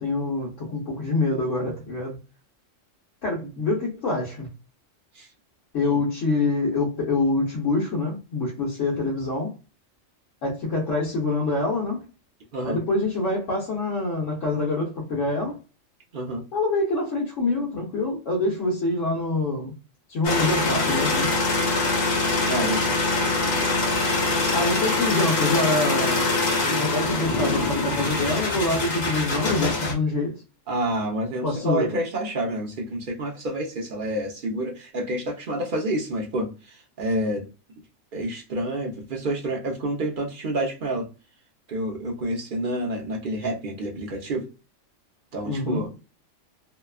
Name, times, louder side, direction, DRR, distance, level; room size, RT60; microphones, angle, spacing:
voice 1, 0.0-2.2 3.2-4.5 5.7-9.5 10.4-12.1 12.6-15.6 16.5-19.7 20.1-21.3 24.5-26.3 26.7-30.4 31.4-32.0 45.4-45.8, left 2 dB, 75° left, 1.2 m, -25 dB
voice 2, 16.1-16.4 22.5-22.9 30.7-37.4 38.1-41.1 41.7-44.5 45.3-46.0, right 1 dB, 50° right, 0.7 m, -28 dB
sound 1, 20.2-29.9, left 2 dB, 45° left, 0.6 m, -24 dB
2.8 x 2.2 x 2.3 m
omnidirectional pair, 1.3 m